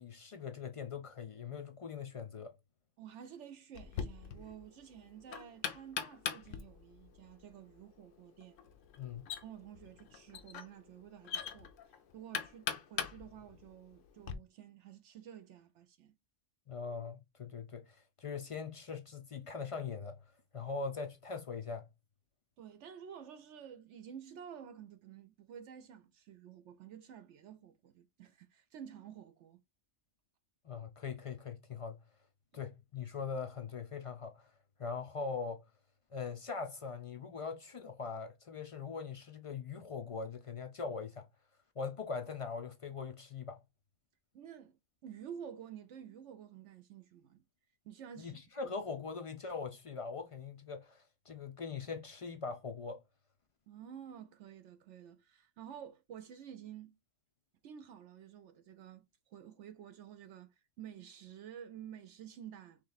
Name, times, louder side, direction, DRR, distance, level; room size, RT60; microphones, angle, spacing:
voice 1, 0.0-2.5 9.0-9.3 16.7-20.2 20.5-21.8 30.6-32.0 32.5-34.5 34.8-35.6 36.1-41.3 41.8-43.6 48.2-53.0, left 5 dB, 55° left, 0.3 m, -41 dB
voice 2, 3.0-8.6 9.4-11.7 12.1-16.2 22.6-29.6 32.5-32.7 44.3-44.8 45.0-47.4 47.8-48.4 48.6-48.7 53.7-56.9 57.6-62.8, right 9 dB, 75° right, 0.9 m, -51 dB
Knock, 3.7-14.3, left 7 dB, 85° left, 1.0 m, -43 dB
3.3 x 3.1 x 3.9 m
omnidirectional pair, 1.3 m